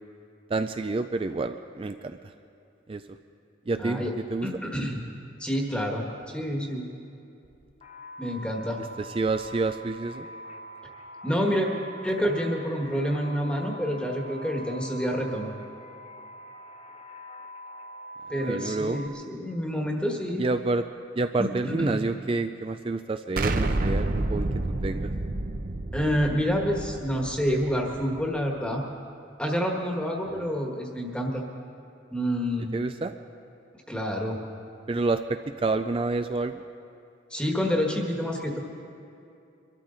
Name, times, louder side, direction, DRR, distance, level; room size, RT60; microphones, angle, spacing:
voice 1, 0.5-2.3 2.9-3.2 3.7-4.5 9.0-10.3 18.4-19.0 20.4-20.9 21.2-24.5 24.8-25.1 30.3-30.5 32.7-33.2 34.9-36.6, right 3 dB, 30° right, 8 dB, 0.3 m, -28 dB
voice 2, 3.8-4.1 4.4-5.0 5.4-6.0 6.3-6.9 8.2-8.8 11.2-11.7 12.0-15.5 18.3-20.4 21.4-22.0 25.9-28.8 29.4-31.4 32.1-32.7 33.9-34.4 37.3-38.6, equal, 5° left, 0 dB, 1.4 m, -28 dB
sound 1, 7.8-19.1, right 1 dB, 30° left, 0.7 m, -44 dB
Explosion, 23.4-28.2, right 2 dB, 45° right, 0.7 m, -29 dB
24.0 x 13.0 x 3.9 m, 2.6 s
head